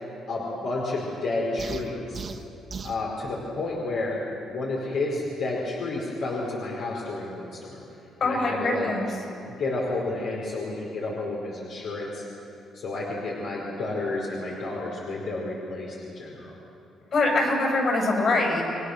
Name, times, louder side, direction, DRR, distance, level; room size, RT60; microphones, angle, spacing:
voice 1, 0.3-2.3 2.8-4.2 4.5-7.8 8.2-8.9 9.5-12.3 12.7-16.6, left 2 dB, 75° left, -3 dB, 4.5 m, -31 dB
sound 1, 1.6-3.0, right 5 dB, 50° right, 1.6 m, -37 dB
voice 2, 8.2-9.1 17.1-18.6, left 2 dB, 55° left, 0 dB, 7.5 m, -23 dB
29.5 x 22.5 x 6.6 m, 2.9 s
cardioid pair, 90°, 0 cm